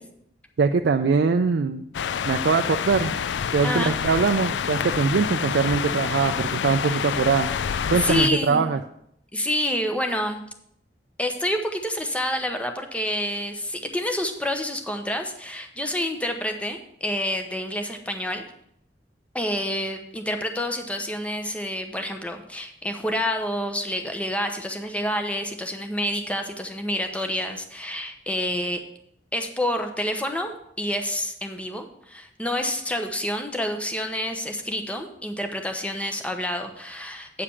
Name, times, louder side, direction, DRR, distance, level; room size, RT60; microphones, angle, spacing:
voice 1, 0.6-1.8 2.3-3.1 3.5-7.5 7.9-8.8, right 5 dB, 75° right, 6 dB, 0.4 m, -22 dB
sound 1, 1.9-8.3, left 7 dB, 90° left, 0.4 m, -27 dB
voice 2, 3.6-3.9 6.8-7.0 7.9-8.7 9.3-10.4 11.2-18.4 19.3-28.8 29.3-37.4, left 1 dB, 10° left, 5 dB, 0.9 m, -28 dB
8.6 x 5.0 x 7.0 m, 0.73 s
head